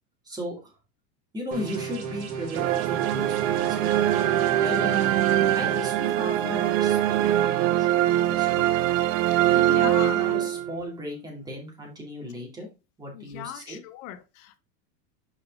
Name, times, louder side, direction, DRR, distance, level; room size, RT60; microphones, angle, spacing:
voice 1, 0.2-0.7 1.3-3.9 4.6-5.1 5.5-8.8 9.4-12.7 13.0-13.8, left 1 dB, 10° right, 2.4 m, -36 dB
sound 1, 1.5-5.9, right 5 dB, 30° right, 1.7 m, -36 dB
sound 2, 2.5-10.9, right 13 dB, 55° right, 0.7 m, -23 dB
voice 2, 9.6-10.4 13.1-14.6, left 13 dB, 55° left, 1.0 m, -38 dB
5.5 x 5.1 x 3.7 m
supercardioid pair, 145°, 48 cm